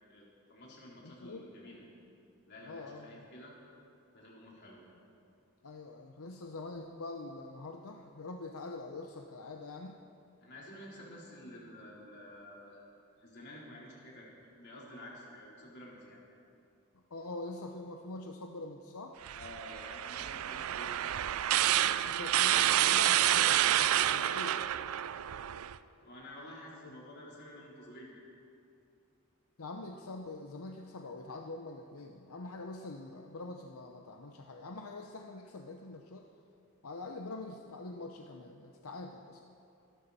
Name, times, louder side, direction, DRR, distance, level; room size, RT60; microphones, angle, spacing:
voice 1, 0.1-1.8 2.5-3.5 4.1-4.8 10.4-12.9 13.2-16.2 19.4-21.1 25.6-28.2, left 1 dB, 50° left, -4 dB, 3.8 m, -50 dB
voice 2, 1.0-1.5 2.6-3.3 5.6-10.0 17.1-19.2 22.1-24.6 26.8-27.0 29.6-36.3 36.8-39.4, left 2 dB, 85° left, 3 dB, 0.8 m, -44 dB
sound 1, 19.3-25.8, right 12 dB, 75° right, 0.4 m, -29 dB
25.5 x 12.0 x 4.2 m, 2.6 s
head